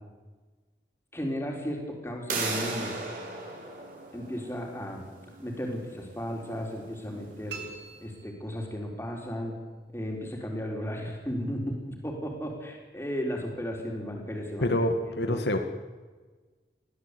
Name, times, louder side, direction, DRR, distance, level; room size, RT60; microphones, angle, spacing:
voice 1, 1.1-2.9 4.1-5.0 5.4-7.6 8.0-9.6 9.9-14.9 15.2-15.4, equal, 15° left, 1 dB, 4.3 m, -35 dB
sound 1, 2.3-7.9, right 3 dB, 50° right, 5.2 m, -38 dB
sound 2, 7.5-9.0, right 5 dB, 85° right, 5.1 m, -44 dB
voice 2, 14.6-15.6, left 1 dB, 80° left, 6 dB, 1.7 m, -26 dB
22.0 x 15.5 x 8.4 m, 1.3 s
head